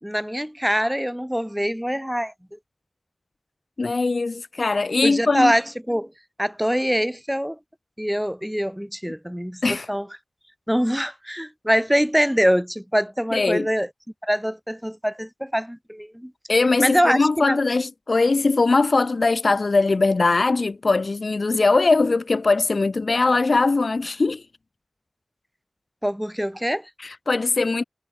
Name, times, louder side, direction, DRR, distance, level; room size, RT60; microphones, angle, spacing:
voice 1, 0.0-2.3 5.0-6.1 6.4-7.6 8.0-10.1 10.7-13.9 14.2-16.3 16.8-17.6 26.0-26.9, equal, 5° right, 3.0 m, -24 dB
voice 2, 3.8-5.5 9.6-9.9 13.3-13.7 16.5-24.4 27.0-27.8, left 3 dB, 60° left, 0.8 m, -20 dB
wide cardioid pair, 75°, 0 cm